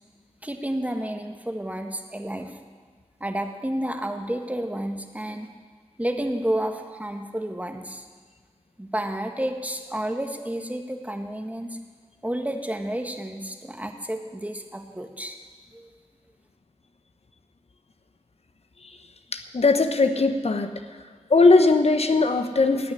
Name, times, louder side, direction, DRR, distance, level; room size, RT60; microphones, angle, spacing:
voice 1, 0.4-2.5 3.2-5.5 6.0-8.0 8.8-11.8 12.2-15.4 15.7-15.9, right 1 dB, 15° right, 5 dB, 1.5 m, -30 dB
voice 2, 19.3-20.7 21.3-22.9, left 3 dB, 65° left, 8 dB, 1.0 m, -19 dB
16.0 x 6.4 x 9.8 m, 1.5 s
cardioid pair, 45°, 11 cm